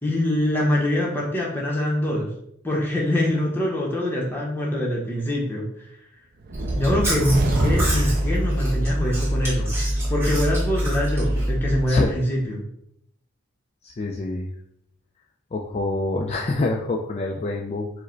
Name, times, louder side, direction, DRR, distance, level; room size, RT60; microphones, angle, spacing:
voice 1, 0.0-2.3 2.6-5.7 6.8-12.6, left 1 dB, 10° left, -3 dB, 0.8 m, -24 dB
sound 1, 6.4-9.2, right 2 dB, 45° right, 0.4 m, -26 dB
Chewing mastication, 6.5-11.9, right 1 dB, 10° right, 1.6 m, -25 dB
voice 2, 13.8-14.5 15.5-17.9, left 2 dB, 30° left, 0 dB, 0.3 m, -26 dB
4.6 x 2.1 x 4.4 m, 0.73 s
head